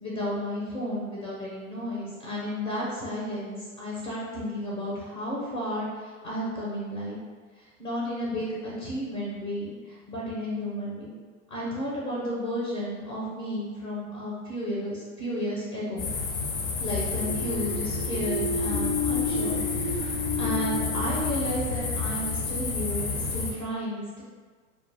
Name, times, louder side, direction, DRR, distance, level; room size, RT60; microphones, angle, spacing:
voice 1, 0.0-7.2 7.6-11.1 11.5-16.1 16.8-20.1 20.4-24.2, equal, 15° left, -6 dB, 0.4 m, -33 dB
sound 1, 16.0-23.5, left 4 dB, 60° left, 0.6 m, -30 dB
sound 2, 17.0-22.6, left 3 dB, 85° left, 1.0 m, -32 dB
2.2 x 2.1 x 3.2 m, 1.5 s
hypercardioid pair, 105°, 41 cm